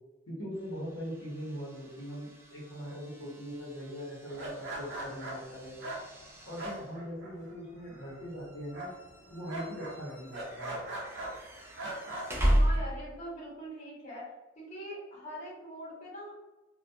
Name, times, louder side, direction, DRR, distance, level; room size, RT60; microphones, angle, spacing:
voice 1, 0.3-5.8 6.5-8.9 9.3-10.8 12.1-12.2, equal, 80° left, -4 dB, 0.9 m, -41 dB
sound 1, 0.5-13.3, equal, 10° right, 0.4 m, -36 dB
sound 2, 4.3-7.6 7.8-8.4 8.7-11.4 11.8-12.6, right 1 dB, 60° right, 0.6 m, -40 dB
voice 2, 12.5-14.2 14.6-16.4, equal, 35° left, -6 dB, 0.9 m, -42 dB
2.2 x 2.2 x 2.6 m, 1.1 s
head